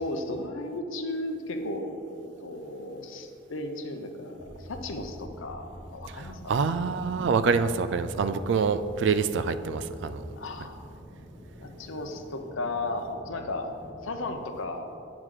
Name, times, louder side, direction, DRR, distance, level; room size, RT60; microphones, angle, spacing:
voice 1, 0.0-6.6 10.4-10.8 11.6-13.7 14.0-14.9, left 2 dB, 80° left, 5 dB, 0.7 m, -35 dB
sound 1, 4.4-14.4, equal, 20° right, 1.1 m, -47 dB
voice 2, 6.1-10.2, right 5 dB, 65° right, 12 dB, 0.3 m, -26 dB
9.5 x 4.8 x 3.7 m, 2.7 s
head